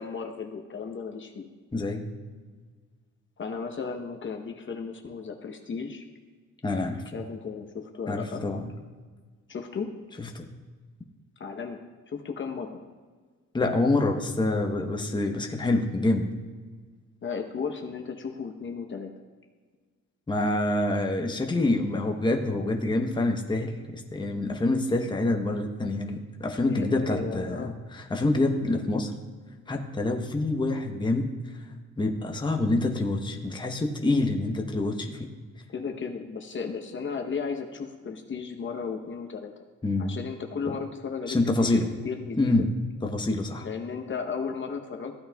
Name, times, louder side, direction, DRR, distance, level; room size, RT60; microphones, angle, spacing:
voice 1, 0.0-1.5 3.4-6.0 7.1-8.4 9.5-9.9 11.4-11.8 12.1-12.8 17.2-19.1 26.6-27.7 35.7-39.5 40.0-42.6 43.6-45.2, left 5 dB, 40° left, 4 dB, 0.9 m, -35 dB
voice 2, 1.7-2.1 6.6-7.0 8.1-8.7 10.2-10.5 13.5-16.3 20.3-29.1 29.7-31.3 32.0-35.3 39.8-40.2 40.7-40.8 41.3-41.9 42.4-42.7 43.0-43.7, left 2 dB, 15° left, 3 dB, 0.9 m, -26 dB
15.0 x 8.5 x 2.3 m, 1.5 s
cardioid pair, 90°, 30 cm